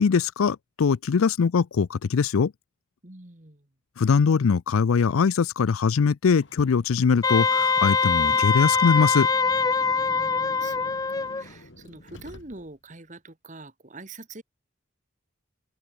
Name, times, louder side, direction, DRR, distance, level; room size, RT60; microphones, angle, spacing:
voice 1, 0.0-2.5 4.0-9.3, left 5 dB, 85° left, 0.5 m, -22 dB
voice 2, 3.0-3.7 10.0-14.4, right 2 dB, 35° right, 1.8 m, -45 dB
Car, 6.4-12.9, left 1 dB, 60° left, 3.7 m, -48 dB
Wind instrument woodwind instrument, 7.2-11.4, left 5 dB, 20° left, 0.4 m, -23 dB
open air
head